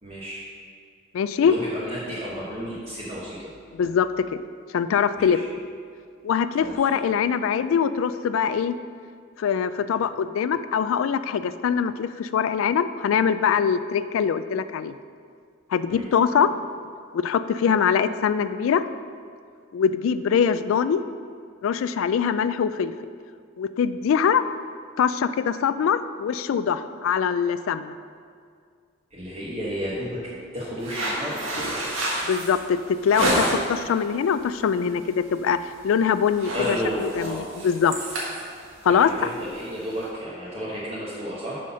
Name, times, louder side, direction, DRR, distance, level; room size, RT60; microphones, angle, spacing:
voice 1, 0.0-0.4 1.4-3.6 5.1-5.4 6.6-6.9 15.9-16.1 29.1-30.2 30.5-31.4 36.5-37.4 39.0-41.6, equal, 30° right, -8 dB, 1.2 m, -32 dB
voice 2, 1.1-1.5 3.7-4.4 4.7-5.4 6.2-8.7 9.4-14.9 15.7-16.5 17.1-18.8 19.7-21.0 21.6-22.9 23.6-24.4 25.0-27.9 32.3-38.0 38.8-39.1, left 7 dB, 75° left, 13 dB, 0.3 m, -23 dB
sound 1, 30.8-33.8 34.3-34.6 35.0-35.2 35.5-35.9 36.2-40.1, right 1 dB, 75° right, 1.6 m, -29 dB
6.2 x 5.7 x 5.6 m, 2.2 s
head